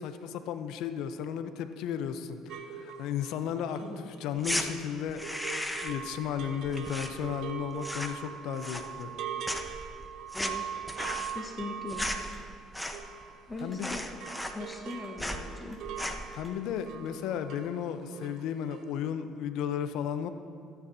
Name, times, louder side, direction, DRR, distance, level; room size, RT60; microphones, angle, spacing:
voice 1, 0.0-5.2 5.7-9.1 13.6-13.9 16.3-20.3, left 8 dB, 75° left, 9 dB, 0.8 m, -34 dB
sound 1, 2.5-13.8 14.0-17.8 18.0-18.4 18.7-18.8, right 8 dB, 70° right, 1.0 m, -41 dB
voice 2, 3.8-4.1 10.3-10.8 11.3-12.1 13.5-14.1 14.5-15.8, left 3 dB, 25° left, 2 dB, 1.4 m, -40 dB
sound 2, 4.4-4.7 5.1-6.1 6.3-7.5 7.8-8.3 8.6-9.2 9.4-13.2 13.5-13.6 13.8-14.9 15.2-15.5 15.9-16.3, left 1 dB, 5° left, 1.0 m, -36 dB
sound 3, 12.2-12.4 13.6-13.8 14.5-15.1 15.6-15.8 16.3-16.5 17.0-17.1, right 1 dB, 20° right, 3.4 m, -59 dB
22.0 x 9.4 x 2.8 m, 2.4 s
supercardioid pair, 75°, 0 cm